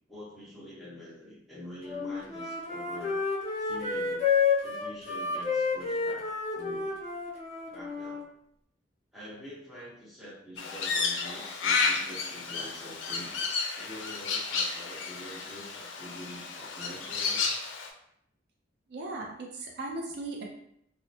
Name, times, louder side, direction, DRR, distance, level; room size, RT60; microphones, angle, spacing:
voice 1, 0.1-3.2 3.6-4.3 4.6-6.9 7.7-8.3 9.1-17.5, equal, ahead, -8 dB, 0.9 m, -46 dB
Wind instrument woodwind instrument, 1.9-8.2, left 5 dB, 35° left, 0.5 m, -30 dB
Crow, 10.6-17.9, left 4 dB, 85° left, 0.4 m, -32 dB
voice 2, 18.9-20.5, right 2 dB, 65° right, 0 dB, 0.4 m, -37 dB
2.8 x 2.0 x 2.6 m, 0.72 s
head